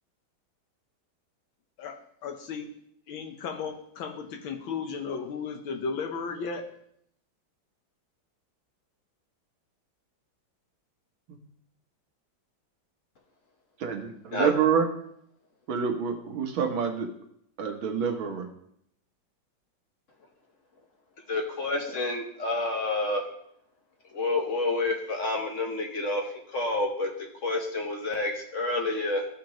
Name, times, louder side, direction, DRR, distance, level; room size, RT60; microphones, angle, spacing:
voice 1, 2.2-2.7 3.1-6.6, left 5 dB, 85° left, 4 dB, 1.8 m, -34 dB
voice 2, 13.8-14.9 15.7-17.1 17.6-18.5, right 7 dB, 80° right, 2 dB, 2.0 m, -27 dB
voice 3, 21.3-23.2 24.1-27.1 27.4-29.3, left 2 dB, 45° left, 2 dB, 1.2 m, -29 dB
14.5 x 5.1 x 3.0 m, 0.71 s
omnidirectional pair, 2.2 m